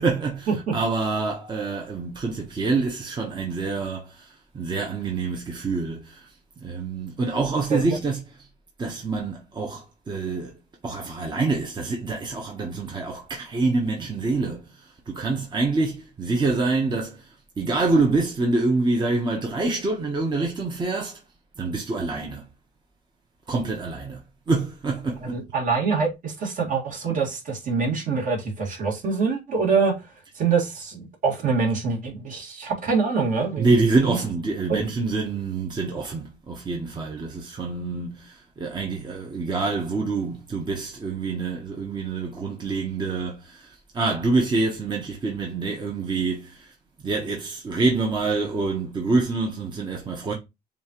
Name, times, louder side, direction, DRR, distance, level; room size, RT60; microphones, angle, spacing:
voice 1, 0.0-6.3 6.6-8.5 8.8-10.5 10.8-14.7 15.1-21.2 21.6-22.5 23.5-25.4 33.6-46.7 47.0-50.3, right 3 dB, 25° right, 0.9 m, -26 dB
voice 2, 25.2-29.9 30.4-33.7 34.0-34.2 34.7-34.9, right 5 dB, 50° right, 1.9 m, -25 dB
7.0 x 2.5 x 2.9 m
cardioid pair, 110°, 17 cm